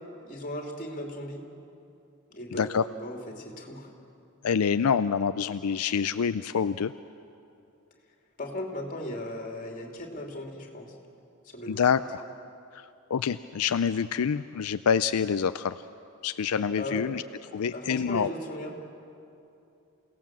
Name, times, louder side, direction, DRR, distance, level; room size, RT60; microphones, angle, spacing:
voice 1, 0.2-1.4 2.3-3.9 8.4-11.0 11.4-11.8 16.7-17.1 17.7-18.7, left 1 dB, 35° left, 2 dB, 2.8 m, -37 dB
voice 2, 4.4-6.9 11.7-12.2 12.7-15.8 16.2-17.2 17.5-18.3, left 6 dB, 80° left, 11 dB, 0.5 m, -26 dB
28.5 x 17.5 x 7.5 m, 2.7 s
head